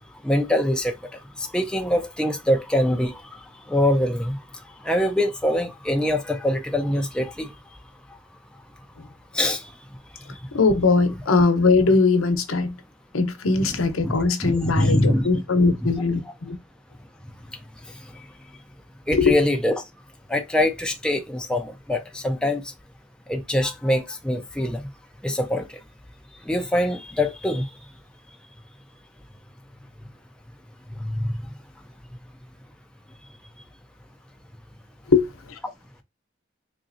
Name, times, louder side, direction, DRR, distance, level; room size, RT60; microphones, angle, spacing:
voice 1, 0.2-4.4 4.8-7.5 9.3-9.7 10.3-10.4 13.6-14.2 14.4-15.3 15.8-15.9 17.9-18.2 19.1-19.8 20.3-22.7 23.3-24.9 25.2-25.8 26.4-27.7 31.0-31.4, left 1 dB, 5° left, 0.3 m, -24 dB
voice 2, 10.5-12.7 13.1-16.6 19.1-19.4 35.1-35.3, left 3 dB, 85° left, 0.8 m, -20 dB
3.8 x 3.0 x 2.5 m
head